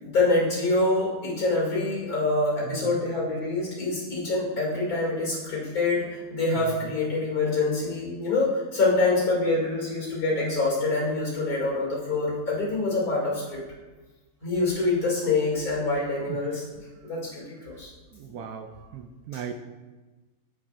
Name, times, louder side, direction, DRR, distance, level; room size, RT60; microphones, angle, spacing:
voice 1, 0.0-13.6 14.4-16.6 17.0-17.9 19.3-19.4, left 2 dB, 65° left, -5 dB, 3.0 m, -25 dB
voice 2, 2.6-3.0 16.3-16.4 18.1-18.7 18.9-19.5, right 8 dB, 75° right, 7 dB, 1.0 m, -37 dB
8.6 x 7.6 x 2.5 m, 1.2 s
omnidirectional pair, 1.7 m